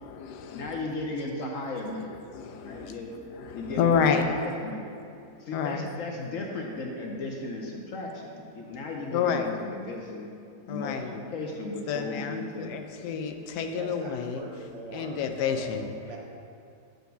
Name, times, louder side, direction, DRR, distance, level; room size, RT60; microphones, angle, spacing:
voice 1, 0.0-0.8 2.3-2.9 3.4-4.3 5.5-5.8 9.1-9.5 10.7-11.2 11.9-14.4 14.9-15.9, left 7 dB, 80° left, 6 dB, 1.2 m, -29 dB
voice 2, 0.5-2.1 2.6-3.1 3.5-4.8 5.4-10.3 10.7-12.7, left 2 dB, 65° left, 0 dB, 0.9 m, -35 dB
voice 3, 13.6-16.2, right 3 dB, 55° right, -1 dB, 0.9 m, -41 dB
5.3 x 4.5 x 6.1 m, 2.5 s
omnidirectional pair, 1.8 m